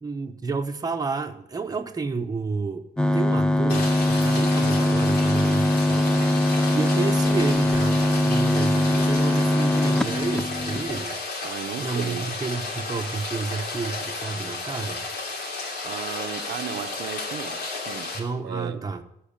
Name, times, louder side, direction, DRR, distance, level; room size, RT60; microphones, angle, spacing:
voice 1, 0.0-2.9 3.1-6.2 6.7-11.2 11.8-15.0 18.1-19.0, right 4 dB, 20° right, 1.0 m, -30 dB
sound 1, 3.0-11.0, left 1 dB, 5° left, 0.4 m, -22 dB
Rain, 3.7-18.2, left 3 dB, 80° left, 3.0 m, -33 dB
voice 2, 11.4-12.3 15.8-17.6 17.9-18.1 18.4-18.8, right 10 dB, 85° right, 0.8 m, -34 dB
14.5 x 4.8 x 8.8 m
cardioid pair, 140°, 17 cm